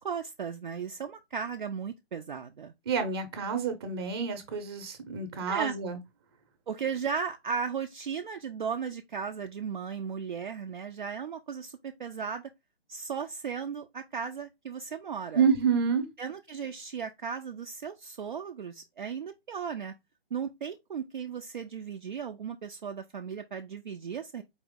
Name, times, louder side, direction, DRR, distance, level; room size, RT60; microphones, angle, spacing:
voice 1, 0.0-2.7 5.5-5.7 6.7-12.5 12.9-15.4 16.2-19.9 20.3-24.4, right 6 dB, 50° right, 0.4 m, -36 dB
voice 2, 2.9-6.0 15.3-16.1, right 6 dB, 25° right, 0.8 m, -28 dB
4.4 x 3.0 x 3.6 m
hypercardioid pair, 155°, 32 cm